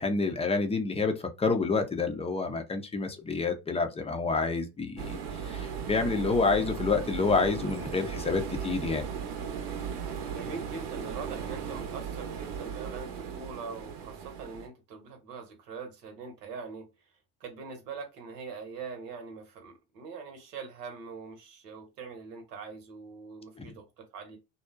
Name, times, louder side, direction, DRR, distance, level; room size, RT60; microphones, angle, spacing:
voice 1, 0.0-5.2 5.4-9.1, left 4 dB, 15° left, 0.4 m, -28 dB
sound 1, 5.0-14.7, right 7 dB, 65° right, 0.8 m, -37 dB
voice 2, 10.3-16.9 17.4-24.4, right 5 dB, 85° right, 1.0 m, -43 dB
2.6 x 2.1 x 2.3 m
hypercardioid pair, 75°, 47 cm